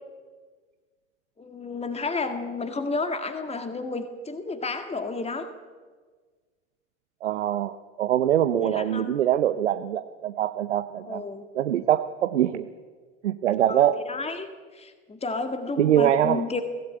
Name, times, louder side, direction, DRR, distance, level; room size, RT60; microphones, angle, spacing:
voice 1, 1.4-5.5 8.6-9.2 11.0-11.5 13.7-16.6, left 3 dB, 20° left, 7 dB, 2.0 m, -31 dB
voice 2, 7.2-11.2 11.5-12.7 13.2-14.0 15.8-16.4, right 11 dB, 85° right, 10 dB, 0.8 m, -23 dB
23.0 x 16.5 x 8.9 m, 1.5 s
hypercardioid pair, 70°, 34 cm